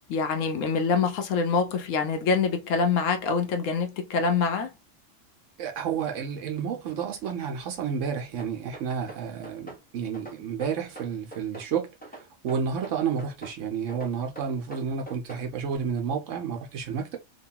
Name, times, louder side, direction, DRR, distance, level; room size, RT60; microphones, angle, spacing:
voice 1, 0.1-4.7, left 5 dB, 80° left, 1.0 m, -25 dB
voice 2, 5.6-17.2, right 7 dB, 75° right, 1.0 m, -31 dB
sound 1, 8.4-9.8 10.1-11.7 12.0-13.6 13.9-15.5, right 2 dB, 10° left, 0.6 m, -43 dB
3.0 x 2.2 x 2.7 m
omnidirectional pair, 1.3 m